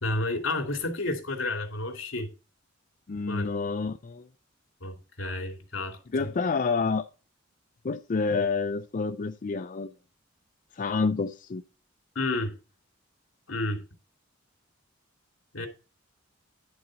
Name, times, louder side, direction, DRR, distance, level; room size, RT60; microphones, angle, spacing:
voice 1, 0.0-2.3 3.3-3.5 4.8-6.0 12.2-12.5 13.5-13.8 15.5-15.7, left 2 dB, 75° left, 2.5 m, -30 dB
voice 2, 3.1-4.3 6.1-7.1 7.8-9.9 10.7-11.6, left 4 dB, 40° left, 0.4 m, -28 dB
11.0 x 4.0 x 6.3 m
head